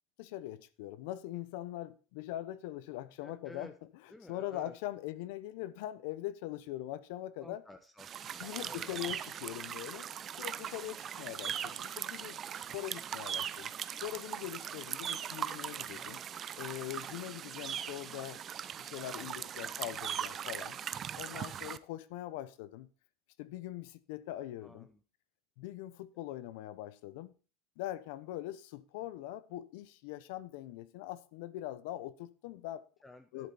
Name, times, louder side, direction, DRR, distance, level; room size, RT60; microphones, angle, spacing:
voice 1, 0.2-3.7 4.3-7.6 8.4-10.1 10.4-13.7 14.0-16.2 16.6-18.4 18.8-20.8 21.2-22.9 23.4-24.9 25.6-27.3 27.8-32.8 33.3-33.5, left 14 dB, 70° left, 1.0 m, -42 dB
voice 2, 3.2-3.7 4.1-4.7 7.4-8.9 15.9-16.1 19.0-19.9 24.6-25.0 33.0-33.5, left 2 dB, 10° left, 1.0 m, -54 dB
sound 1, 8.0-21.8, right 9 dB, 30° right, 0.6 m, -40 dB
11.0 x 8.3 x 4.3 m
supercardioid pair, 135°, 0 cm